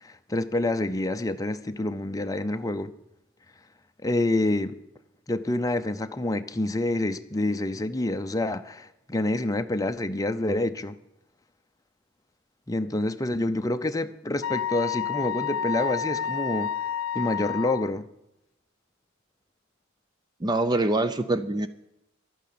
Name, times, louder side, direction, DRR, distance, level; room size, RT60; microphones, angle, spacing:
voice 1, 0.0-2.9 4.0-4.8 5.3-11.0 12.7-16.7 17.1-18.1, left 2 dB, 15° left, 0.6 m, -27 dB
Wind instrument woodwind instrument, 14.4-17.9, left 7 dB, 65° left, 0.5 m, -29 dB
voice 2, 20.4-21.7, right 2 dB, 20° right, 0.5 m, -24 dB
12.0 x 9.7 x 8.6 m
head